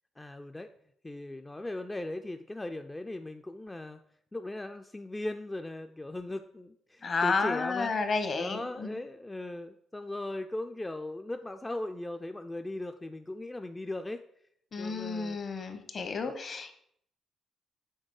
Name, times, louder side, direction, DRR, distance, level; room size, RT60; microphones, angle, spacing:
voice 1, 0.2-0.7 1.0-4.0 4.3-7.9 8.3-14.2 14.8-15.4, left 1 dB, 15° left, 6 dB, 0.3 m, -38 dB
voice 2, 7.0-9.0 14.7-16.7, left 4 dB, 45° left, 8 dB, 0.8 m, -31 dB
6.5 x 3.7 x 4.7 m, 0.71 s
cardioid pair, 90°, 0 cm